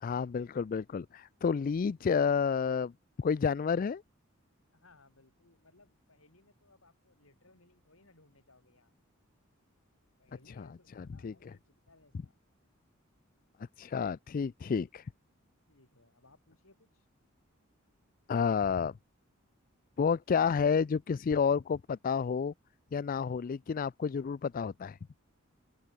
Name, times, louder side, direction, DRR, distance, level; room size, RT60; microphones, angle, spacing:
voice 1, 0.0-2.9 3.2-4.0 10.5-10.7 11.0-11.5 13.8-15.1 18.3-18.9 20.0-22.5 22.9-25.0, left 6 dB, 40° left, 0.3 m, -30 dB
voice 2, 4.7-8.9 10.2-12.3 15.7-17.1, left 2 dB, 80° left, 6.9 m, -64 dB
open air
head